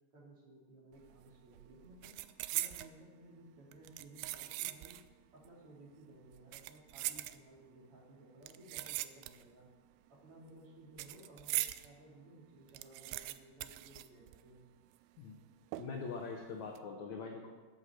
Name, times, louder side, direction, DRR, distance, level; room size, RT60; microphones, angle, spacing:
voice 1, 0.1-2.1 2.5-5.0 5.3-9.7 10.1-14.7, right 2 dB, 35° right, -4 dB, 3.2 m, -57 dB
sound 1, 1.0-1.3 1.5-3.0 3.7-5.1 5.4-5.5 6.3-7.8 8.4-9.6 9.9-11.9 12.3-12.4 12.6-14.7 14.9-15.0 15.7-16.2 16.6-16.8, right 16 dB, 80° right, 2.5 m, -41 dB
voice 2, 15.8-17.5, left 5 dB, 70° left, 2 dB, 1.7 m, -43 dB
13.5 x 8.4 x 7.7 m, 1.3 s
omnidirectional pair, 4.9 m